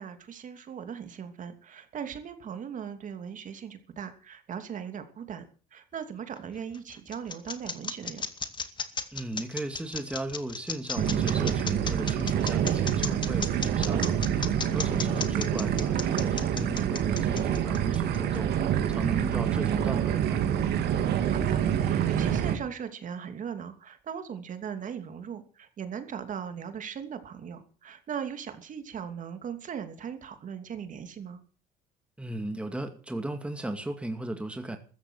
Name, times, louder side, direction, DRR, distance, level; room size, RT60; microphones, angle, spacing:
voice 1, 0.0-5.4 5.7-8.3 14.8-15.1 21.3-31.4, right 7 dB, 50° right, 8 dB, 2.9 m, -39 dB
sound 1, 6.3-18.4, left 5 dB, 25° left, 2.1 m, -35 dB
voice 2, 9.1-14.2 14.6-18.5 18.9-20.6 32.2-34.8, right 1 dB, 5° right, 6 dB, 2.4 m, -36 dB
sound 2, 11.0-22.6, right 9 dB, 75° right, 3.2 m, -27 dB
15.0 x 14.0 x 6.4 m, 0.40 s
cardioid pair, 110°, 17 cm